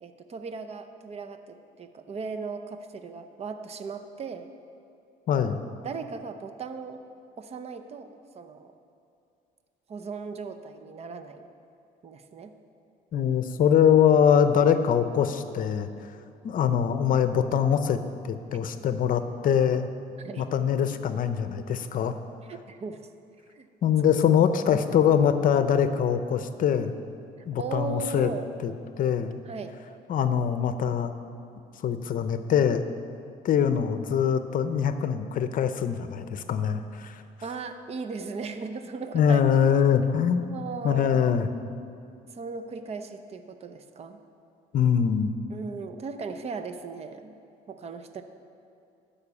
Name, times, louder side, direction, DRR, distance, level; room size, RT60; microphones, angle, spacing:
voice 1, 0.0-4.5 5.8-7.0 7.4-8.7 9.9-11.5 12.0-12.5 20.2-20.5 22.5-23.0 23.5-23.7 24.7-24.8 27.6-28.5 29.5-29.8 37.4-39.4 40.4-41.3 42.3-44.2 45.5-47.3 47.7-48.2, right 4 dB, 40° right, 8 dB, 0.8 m, -37 dB
voice 2, 5.3-5.7 13.1-15.9 16.4-18.0 18.2-19.9 20.4-22.1 23.8-26.9 27.5-28.3 28.6-28.7 29.0-29.4 30.1-31.1 31.8-32.8 33.4-37.2 39.1-40.4 40.8-41.5 44.7-45.3, left 8 dB, 55° left, 10 dB, 0.7 m, -23 dB
13.0 x 5.6 x 8.4 m, 2.6 s
cardioid pair, 110°, 17 cm